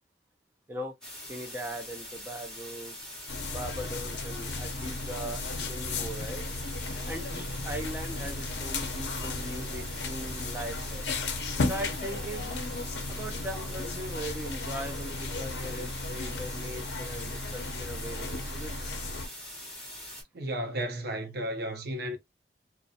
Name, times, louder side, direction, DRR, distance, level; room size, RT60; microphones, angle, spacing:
sound 1, 1.0-20.2, left 1 dB, 5° left, 1.1 m, -43 dB
voice 1, 1.3-3.0 3.5-6.4 7.1-11.0 11.7-12.5 13.1-18.9, right 1 dB, 15° right, 0.4 m, -40 dB
sound 2, 3.3-19.3, left 3 dB, 70° left, 0.5 m, -35 dB
voice 2, 20.3-22.2, right 1 dB, 60° right, 0.6 m, -33 dB
2.4 x 2.0 x 2.6 m
head